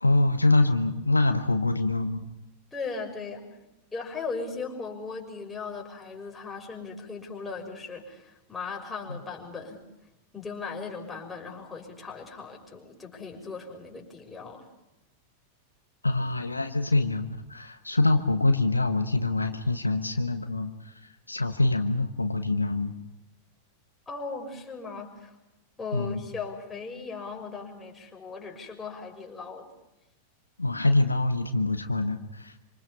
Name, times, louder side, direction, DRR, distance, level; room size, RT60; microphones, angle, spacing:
voice 1, 0.0-2.2 9.1-9.2 16.0-20.9 21.3-22.9 25.9-26.2 30.6-32.6, left 2 dB, 80° left, 7 dB, 1.3 m, -25 dB
voice 2, 2.7-3.5 3.9-9.8 10.3-14.7 24.1-25.3 25.8-29.7, left 4 dB, 10° left, 0 dB, 6.1 m, -38 dB
27.0 x 26.5 x 5.6 m, 0.94 s
figure-of-eight pair, 90°, 0 cm